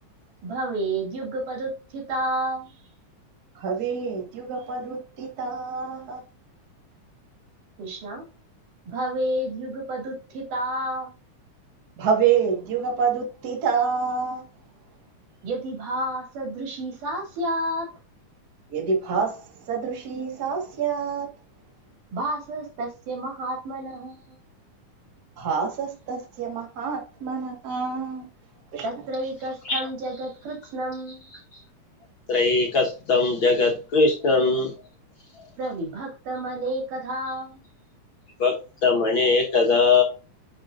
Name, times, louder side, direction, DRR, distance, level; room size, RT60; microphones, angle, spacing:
voice 1, 0.4-2.7 7.8-8.2 8.9-11.1 15.4-17.9 22.1-24.4 28.8-31.2 35.6-37.6, right 1 dB, 85° right, 4.4 m, -30 dB
voice 2, 3.5-6.2 12.0-14.4 18.7-21.3 25.4-28.3 28.7-28.9, right 6 dB, 40° right, 1.7 m, -27 dB
voice 3, 32.3-34.7 38.4-38.5 38.8-40.0, left 4 dB, 50° left, 1.7 m, -20 dB
10.5 x 4.5 x 2.5 m
omnidirectional pair, 3.6 m